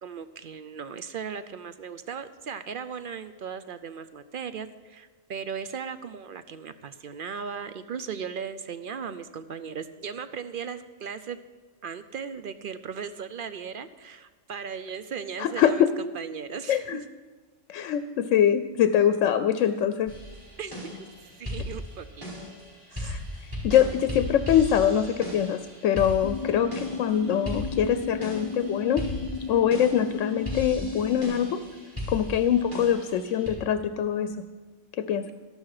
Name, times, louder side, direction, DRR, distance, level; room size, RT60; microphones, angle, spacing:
voice 1, 0.0-11.4 11.8-15.8 16.1-16.9 20.6-21.1 21.4-22.3 22.9-23.2, right 6 dB, 60° right, 12 dB, 0.6 m, -37 dB
voice 2, 15.4-15.9 16.7-17.0 17.7-20.1 22.9-23.2 23.6-29.0 29.5-31.6 32.1-34.4 34.9-35.3, left 9 dB, 80° left, 11 dB, 0.9 m, -24 dB
sound 1, 20.1-33.5, left 1 dB, 25° right, 4.8 m, -37 dB
sound 2, 26.2-31.2, left 5 dB, 45° left, 0.4 m, -35 dB
13.0 x 12.0 x 4.8 m, 1.3 s
omnidirectional pair, 1.3 m